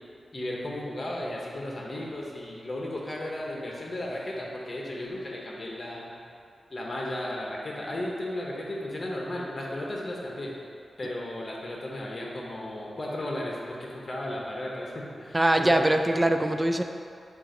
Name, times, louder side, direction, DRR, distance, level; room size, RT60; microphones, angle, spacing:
voice 1, 0.3-6.1 6.7-10.6 11.0-15.8, left 1 dB, 35° left, -3 dB, 1.1 m, -35 dB
voice 2, 15.3-16.8, right 1 dB, 20° right, 6 dB, 0.4 m, -22 dB
7.1 x 2.6 x 5.1 m, 2.6 s
wide cardioid pair, 90°, 0 cm